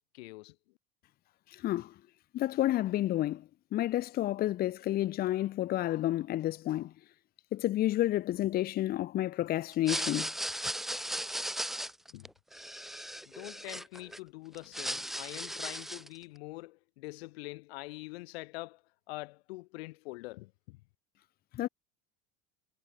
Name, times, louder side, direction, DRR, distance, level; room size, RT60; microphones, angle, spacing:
voice 1, 0.1-0.6 12.1-12.3 13.3-18.8 19.1-20.8, left 22 dB, 75° left, 3.9 m, -44 dB
voice 2, 1.5-1.9 2.3-3.4 3.7-6.9 7.5-10.3 21.5-21.7, left 14 dB, 30° left, 1.4 m, -30 dB
sound 1, 9.7-14.2 14.5-16.2, equal, ahead, 0.9 m, -37 dB
cardioid pair, 170°, 31 cm